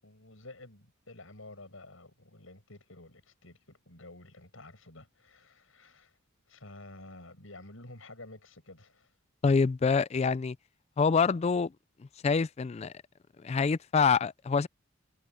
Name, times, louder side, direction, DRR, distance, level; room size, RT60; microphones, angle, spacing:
voice 1, 0.0-6.2 6.5-9.1, left 2 dB, 75° left, 7.1 m, -51 dB
voice 2, 9.4-10.6 11.0-11.7 12.2-12.9 13.4-14.7, left 5 dB, 30° left, 0.3 m, -26 dB
head